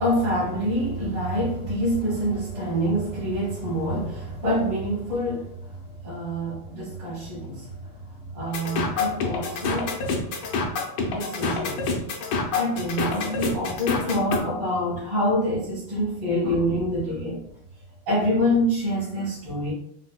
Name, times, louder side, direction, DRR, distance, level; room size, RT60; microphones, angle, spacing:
voice 1, 0.0-10.4 11.0-11.9 12.5-17.4 18.1-19.7, equal, 75° right, -10 dB, 2.2 m, -26 dB
sound 1, 8.5-14.4, left 4 dB, 75° left, 1.4 m, -27 dB
4.9 x 2.2 x 2.2 m, 0.70 s
omnidirectional pair, 2.4 m